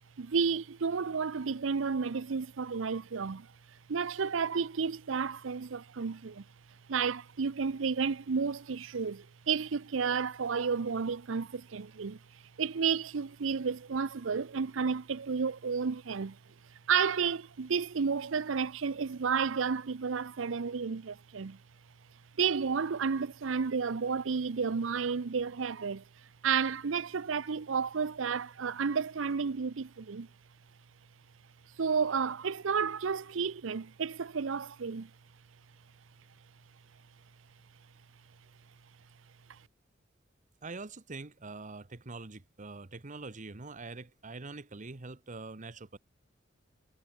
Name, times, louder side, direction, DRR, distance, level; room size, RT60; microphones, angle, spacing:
voice 1, 0.2-3.5 3.9-6.4 6.9-12.2 12.6-16.4 16.9-21.6 22.4-26.0 26.4-30.3 31.8-35.1, right 5 dB, 80° right, 0.6 m, -31 dB
voice 2, 40.6-46.0, right 3 dB, 40° right, 1.1 m, -44 dB
head